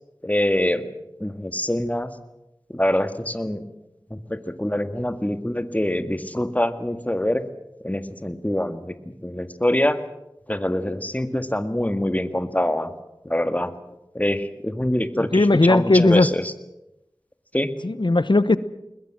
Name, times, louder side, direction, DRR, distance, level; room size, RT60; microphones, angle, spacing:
voice 1, 0.2-0.8 1.2-2.1 2.7-3.6 4.1-7.4 7.8-8.9 9.2-10.0 10.5-12.9 13.3-13.7 14.2-16.5 17.5-17.7, left 1 dB, 20° left, 9 dB, 1.8 m, -24 dB
voice 2, 15.3-16.3 17.8-18.6, left 2 dB, 70° left, 15 dB, 0.9 m, -17 dB
21.5 x 21.0 x 7.7 m, 0.89 s
wide cardioid pair, 45°, 8 cm